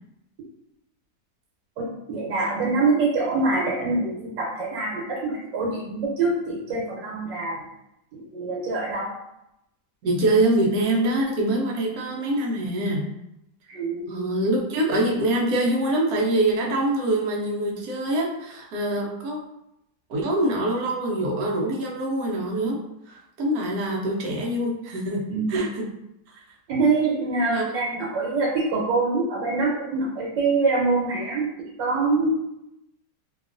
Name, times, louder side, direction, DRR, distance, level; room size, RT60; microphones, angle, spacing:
voice 1, 1.8-7.7 8.3-9.1 13.7-14.2 25.3-25.6 26.7-31.5 31.8-32.5, right 3 dB, 85° right, -5 dB, 1.3 m, -25 dB
voice 2, 10.0-13.0 14.1-19.4 20.1-22.8 23.1-25.2 25.5-25.9 26.3-26.4 27.4-27.6, right 1 dB, 70° right, -2 dB, 0.9 m, -24 dB
2.9 x 2.3 x 2.5 m, 0.86 s
omnidirectional pair, 1.9 m